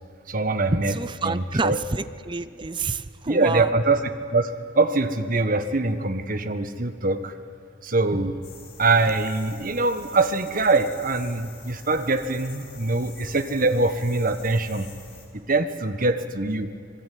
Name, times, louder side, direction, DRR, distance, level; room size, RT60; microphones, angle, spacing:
voice 1, 0.3-1.8 3.3-4.0 4.3-7.3 7.8-8.4 8.8-14.9 15.5-16.7, right 3 dB, 45° right, 9 dB, 1.4 m, -23 dB
voice 2, 0.9-3.7, right 3 dB, 25° right, 14 dB, 0.7 m, -29 dB
sound 1, 8.4-15.3, left 4 dB, 50° left, 4.7 m, -46 dB
26.0 x 21.0 x 9.4 m, 2.3 s
head